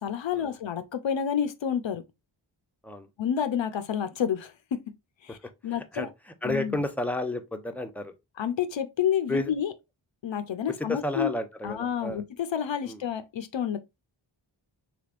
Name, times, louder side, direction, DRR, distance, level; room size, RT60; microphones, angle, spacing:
voice 1, 0.0-2.0 3.2-4.8 5.2-5.4 5.6-6.1 6.4-6.8 8.4-9.7 10.2-11.3 11.6-13.8, left 8 dB, 65° left, 0.6 m, -29 dB
voice 2, 5.6-8.1 9.3-9.5 10.9-12.2 12.9-13.0, left 2 dB, 5° left, 0.6 m, -32 dB
3.4 x 3.3 x 2.4 m
wide cardioid pair, 55°, 48 cm